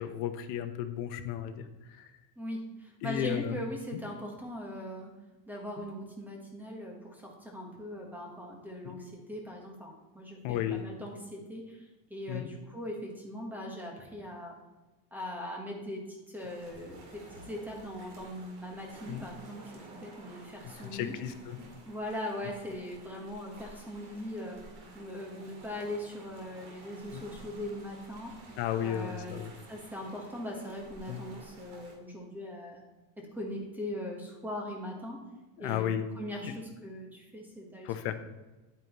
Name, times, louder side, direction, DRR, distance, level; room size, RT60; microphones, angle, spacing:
voice 1, 0.0-1.7 2.0-2.1 3.0-3.6 3.9-4.0 8.8-8.9 10.4-10.8 12.3-12.5 19.1-19.3 20.6-21.6 27.1-27.2 28.6-29.5 31.1-31.2 35.6-36.1 36.4-36.5 37.8-38.1, left 10 dB, 60° left, 8 dB, 0.9 m, -34 dB
voice 2, 2.4-5.1 5.5-11.8 12.1-14.6 15.1-16.1 16.3-19.6 19.9-21.1 21.9-24.6 24.9-28.3 28.8-29.4 29.7-32.8 33.2-35.2 35.6-38.1, left 1 dB, 5° right, 0 dB, 1.2 m, -40 dB
sound 1, 16.4-32.0, right 2 dB, 60° right, 2.3 m, -52 dB
9.4 x 8.9 x 3.0 m, 1.1 s
cardioid pair, 175°, 46 cm